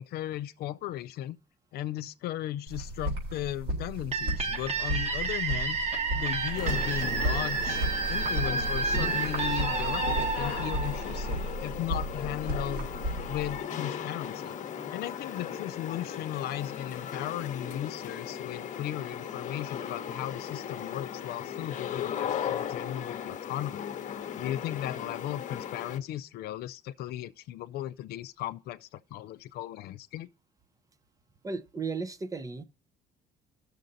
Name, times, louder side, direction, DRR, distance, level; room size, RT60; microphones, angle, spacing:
voice 1, 0.0-1.4 1.7-5.8 6.2-12.9 13.3-14.5 14.9-23.9 24.4-30.3, left 13 dB, 70° left, 0.4 m, -36 dB
sound 1, 2.7-13.6, right 1 dB, 85° right, 3.3 m, -34 dB
sound 2, 4.1-11.7, right 5 dB, 40° right, 1.2 m, -31 dB
sound 3, 6.5-26.0, left 8 dB, 50° left, 0.9 m, -37 dB
voice 2, 31.4-32.6, right 4 dB, 20° right, 0.5 m, -35 dB
19.0 x 6.5 x 2.6 m
cardioid pair, 110°, 17 cm